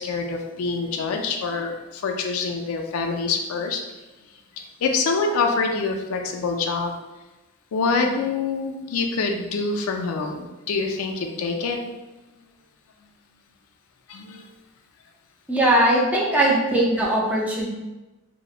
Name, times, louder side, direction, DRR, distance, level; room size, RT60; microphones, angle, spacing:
voice 1, 0.0-3.8 4.6-7.0 7.7-11.8 14.1-14.5 17.3-17.4, left 4 dB, 85° left, 3 dB, 0.4 m, -26 dB
voice 2, 15.5-17.7, right 1 dB, 5° right, -4 dB, 0.4 m, -20 dB
2.9 x 2.0 x 2.3 m, 1.1 s
head